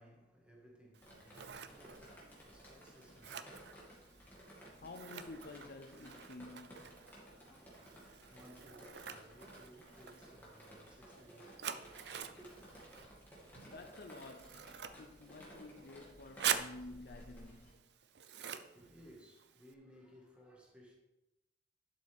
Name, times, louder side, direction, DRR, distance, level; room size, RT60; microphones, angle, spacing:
voice 1, 0.0-3.9 4.3-4.8 7.9-12.6 18.4-21.0, right 1 dB, 5° right, 1.8 m, -61 dB
Scissors, 0.9-19.7, right 8 dB, 70° right, 0.6 m, -46 dB
Drip, 1.0-17.7, equal, 10° left, 2.4 m, -57 dB
voice 2, 4.5-7.0 13.6-17.8, left 2 dB, 55° left, 0.6 m, -51 dB
11.5 x 7.6 x 3.6 m
head